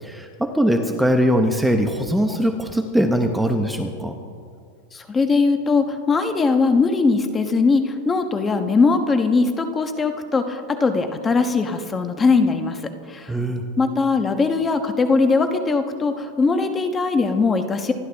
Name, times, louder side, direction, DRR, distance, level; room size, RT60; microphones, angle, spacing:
voice 1, 0.0-4.2 13.3-13.6, equal, 5° right, 5 dB, 0.9 m, -21 dB
voice 2, 4.9-12.8 13.1-13.3 13.8-17.9, left 4 dB, 15° left, 7 dB, 1.1 m, -20 dB
26.5 x 11.5 x 3.5 m, 2.2 s
supercardioid pair, 135°, 0 cm